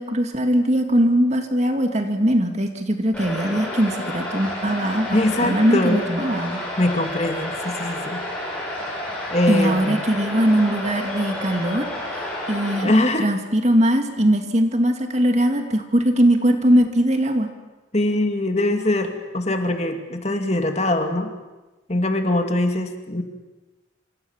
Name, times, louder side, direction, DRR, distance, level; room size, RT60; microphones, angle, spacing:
voice 1, 0.0-6.6 9.5-12.9 13.2-17.5, equal, 35° right, 5 dB, 2.3 m, -20 dB
sound 1, 3.1-12.8, left 1 dB, 5° left, 7.8 m, -30 dB
voice 2, 5.1-6.0 6.8-8.2 9.3-10.0 12.8-13.3 17.9-21.3 21.9-23.2, left 1 dB, 35° left, 5 dB, 2.4 m, -22 dB
27.0 x 26.5 x 7.3 m, 1.1 s
head